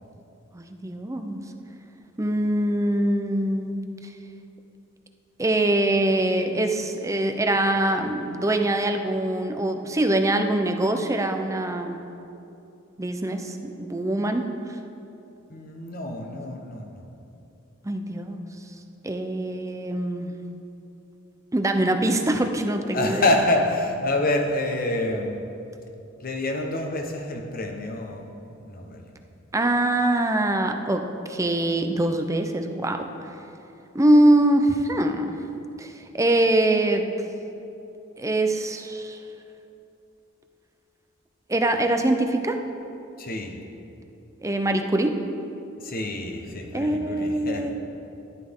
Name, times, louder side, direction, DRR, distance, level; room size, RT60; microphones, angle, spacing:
voice 1, 0.5-1.5 2.2-3.8 5.4-12.0 13.0-14.5 17.8-18.4 19.0-20.3 21.5-23.3 29.5-33.1 33.9-35.4 35.8-37.1 38.2-39.2 41.5-42.6 44.4-45.3 46.7-47.7, right 1 dB, 15° right, 5 dB, 0.7 m, -23 dB
voice 2, 15.5-17.0 22.9-25.4 26.2-29.1 43.2-43.6 45.8-47.7, left 1 dB, 45° left, 3 dB, 1.2 m, -27 dB
13.5 x 11.0 x 3.7 m, 2.8 s
head